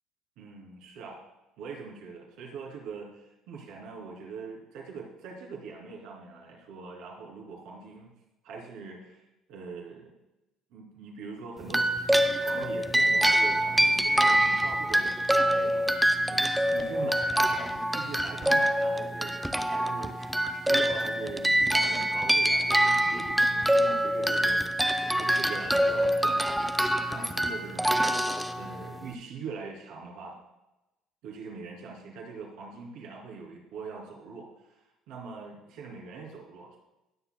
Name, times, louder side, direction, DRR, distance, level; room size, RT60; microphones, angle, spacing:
voice 1, 0.4-1.2 1.6-8.1 8.4-9.2 9.5-10.2 10.7-11.9 12.2-15.8 16.3-24.6 25.1-28.1 28.6-30.4 31.2-34.5 35.1-36.8, right 4 dB, 80° right, -1 dB, 2.8 m, -42 dB
sound 1, 11.7-29.1, right 1 dB, 5° right, 0.6 m, -25 dB
19.5 x 6.7 x 2.2 m, 0.96 s
cardioid pair, 105°, 0 cm